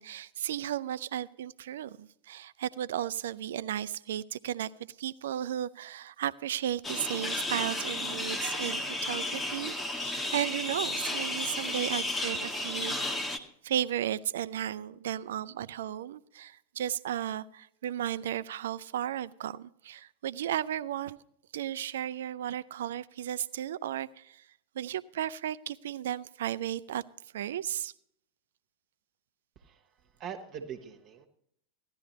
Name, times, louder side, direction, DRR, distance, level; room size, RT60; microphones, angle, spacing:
voice 1, 0.0-4.7 5.0-12.9 13.6-21.2 21.5-24.4 24.7-27.0 27.3-27.9, right 11 dB, 60° right, 17 dB, 0.4 m, -34 dB
sound 1, 6.8-13.4, left 1 dB, 15° left, 1.2 m, -33 dB
voice 2, 29.5-31.3, right 7 dB, 35° right, 3 dB, 1.3 m, -43 dB
15.5 x 11.5 x 3.0 m, 0.70 s
figure-of-eight pair, 90°, 0 cm